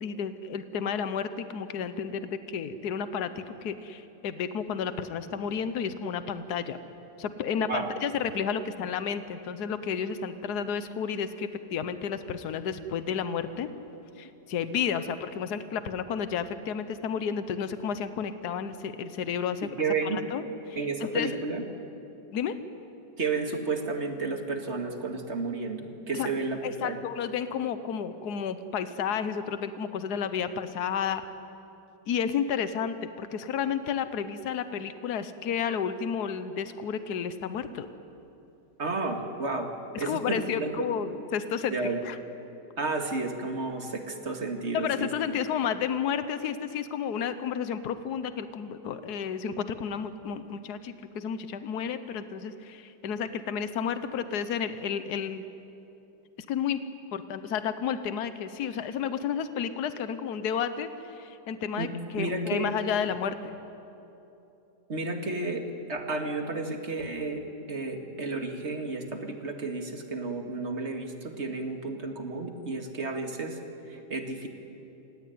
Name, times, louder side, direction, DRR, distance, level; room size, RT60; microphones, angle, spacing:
voice 1, 0.0-6.8 7.2-13.7 14.2-19.7 20.0-21.4 22.3-22.6 26.1-26.3 26.6-31.2 32.1-37.9 39.9-41.7 42.0-42.2 44.7-55.4 56.5-56.8 57.1-60.9 61.2-61.9 62.1-63.6, left 7 dB, 70° left, 11 dB, 1.5 m, -31 dB
voice 2, 19.8-20.2 20.7-21.6 23.2-27.0 38.8-39.7 40.0-40.9 41.7-42.0 42.8-45.1 61.8-62.7 64.9-67.4 67.7-73.6 73.9-74.5, right 3 dB, 40° right, 4 dB, 2.3 m, -32 dB
27.5 x 17.5 x 9.4 m, 2.9 s
omnidirectional pair, 1.8 m